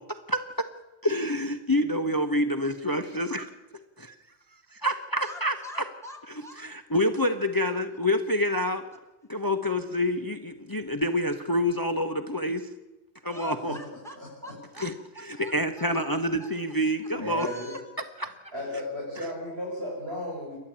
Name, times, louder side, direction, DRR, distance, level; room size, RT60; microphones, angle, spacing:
voice 1, 1.0-3.5 4.0-4.1 4.7-5.8 6.6-8.8 9.3-12.7 13.2-13.8 14.8-14.9 15.2-17.5 18.2-18.3, left 1 dB, 20° left, 7 dB, 1.0 m, -27 dB
voice 2, 5.2-6.6 13.3-14.2 14.4-16.1 16.4-16.5 17.0-17.1 17.3-17.8, left 1 dB, 5° left, 0 dB, 3.2 m, -45 dB
voice 3, 14.1-14.5 17.2-17.7 18.5-20.6, left 1 dB, 65° right, -5 dB, 7.2 m, -35 dB
28.5 x 12.0 x 8.8 m, 1.1 s
omnidirectional pair, 1.1 m